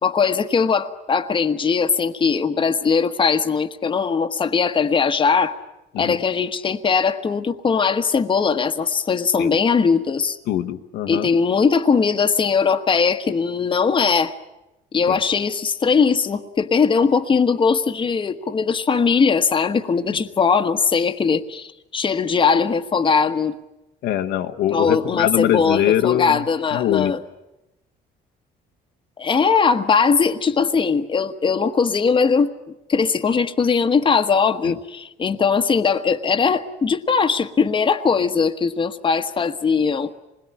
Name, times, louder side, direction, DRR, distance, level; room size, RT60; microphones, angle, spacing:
voice 1, 0.0-5.6 6.0-10.4 11.1-14.3 14.9-23.6 24.7-27.2 29.2-32.5 32.9-40.1, left 5 dB, 30° left, 7 dB, 1.3 m, -20 dB
voice 2, 10.5-11.3 15.1-15.2 24.0-26.4 26.7-27.1 34.6-34.7, left 11 dB, 80° left, 6 dB, 1.2 m, -22 dB
26.5 x 21.0 x 9.8 m, 0.95 s
cardioid pair, 110°, 17 cm